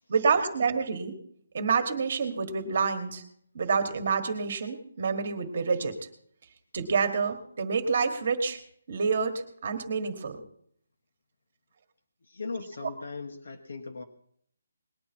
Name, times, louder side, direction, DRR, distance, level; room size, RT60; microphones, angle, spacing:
voice 1, 0.1-1.1 1.5-3.2 3.5-5.9 6.7-8.6 8.9-10.4, right 5 dB, 35° right, 7 dB, 1.5 m, -28 dB
voice 2, 12.2-14.0, left 4 dB, 60° left, 3 dB, 1.4 m, -38 dB
20.0 x 10.0 x 4.4 m, 0.66 s
hypercardioid pair, 175°, 0 cm